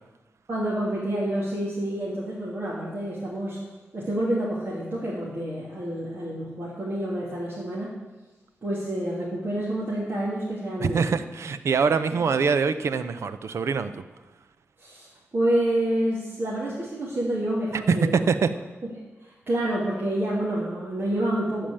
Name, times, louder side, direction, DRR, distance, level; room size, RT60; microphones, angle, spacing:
voice 1, 0.5-3.6 3.9-7.9 8.6-11.1 14.8-15.1 15.3-18.2 19.2-21.7, right 1 dB, 45° right, -7 dB, 2.8 m, -28 dB
voice 2, 10.8-14.0 17.7-18.5, right 5 dB, 75° right, 11 dB, 0.7 m, -24 dB
13.0 x 5.1 x 8.7 m, 1.1 s
wide cardioid pair, 95°, 5 cm